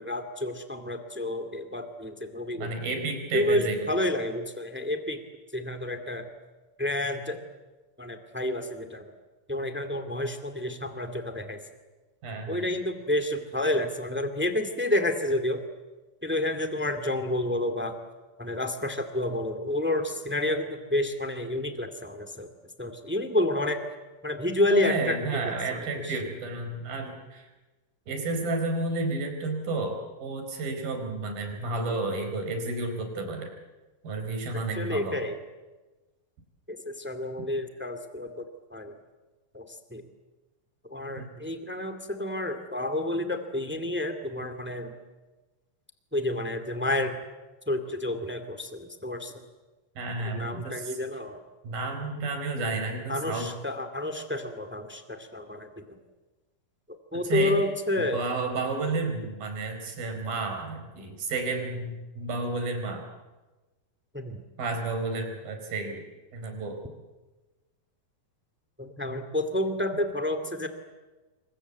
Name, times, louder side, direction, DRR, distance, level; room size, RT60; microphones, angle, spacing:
voice 1, 0.0-2.7 3.3-5.2 5.5-6.2 6.8-7.4 8.0-9.1 9.5-11.6 12.5-15.6 16.2-17.9 18.4-22.5 22.8-23.8 24.2-25.2 25.4-25.8 26.0-26.1 34.5-35.4 36.7-38.9 39.5-40.0 40.9-44.9 46.1-47.2 47.7-49.3 50.3-51.4 53.1-55.8 57.1-58.2 64.1-64.4 68.8-70.7, left 1 dB, 5° right, 8 dB, 1.1 m, -29 dB
voice 2, 2.6-3.9 12.2-12.7 24.7-27.5 28.1-33.5 34.0-35.2 41.2-41.3 50.0-51.0 51.6-53.5 57.2-57.6 58.0-63.0 64.6-66.0 66.3-66.8, right 3 dB, 70° right, 5 dB, 6.1 m, -31 dB
28.0 x 24.5 x 8.3 m, 1.2 s
omnidirectional pair, 4.3 m